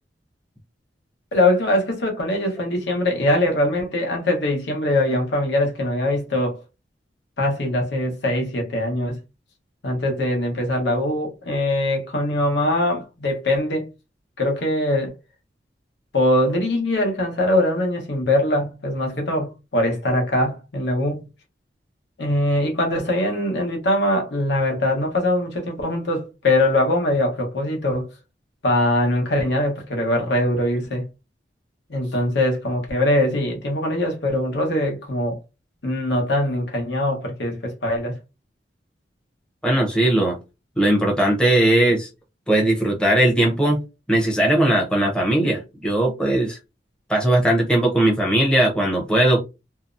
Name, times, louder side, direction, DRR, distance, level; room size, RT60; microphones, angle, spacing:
voice 1, 1.3-6.6 7.4-9.2 9.8-13.9 14.4-15.1 16.1-21.3 22.2-28.1 28.6-31.1 31.9-35.4 35.8-38.2, left 1 dB, 70° left, 0.9 m, -22 dB
voice 2, 39.6-40.4 40.8-42.1 42.5-43.8 44.1-46.6 47.1-49.4, right 1 dB, 5° left, 0.6 m, -19 dB
2.7 x 2.0 x 2.4 m
head